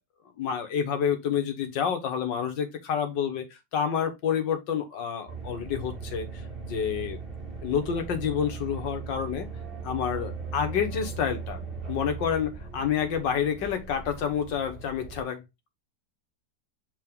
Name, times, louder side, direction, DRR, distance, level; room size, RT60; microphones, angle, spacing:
voice 1, 0.4-3.5 3.7-7.2 7.6-9.5 9.8-11.6 11.9-15.4, left 7 dB, 90° left, 1.9 m, -28 dB
sound 1, 5.3-15.2, right 5 dB, 30° right, 2.3 m, -38 dB
6.1 x 4.3 x 3.7 m
omnidirectional pair, 1.9 m